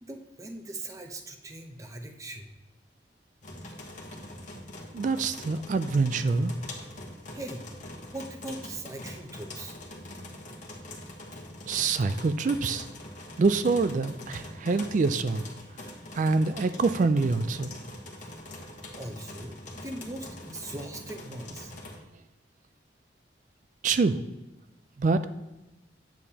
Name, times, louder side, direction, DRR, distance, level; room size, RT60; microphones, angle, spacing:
voice 1, 0.0-2.5 7.3-7.7 8.0-9.8 19.0-21.7, right 2 dB, 20° right, 5 dB, 0.7 m, -40 dB
sound 1, 3.4-22.0, left 1 dB, 45° left, 1.1 m, -43 dB
voice 2, 4.9-6.5 11.7-12.8 13.4-15.5 16.1-17.7 23.8-24.2 25.0-25.2, right 4 dB, 45° right, 11 dB, 0.4 m, -25 dB
8.3 x 7.1 x 2.9 m, 1.0 s
head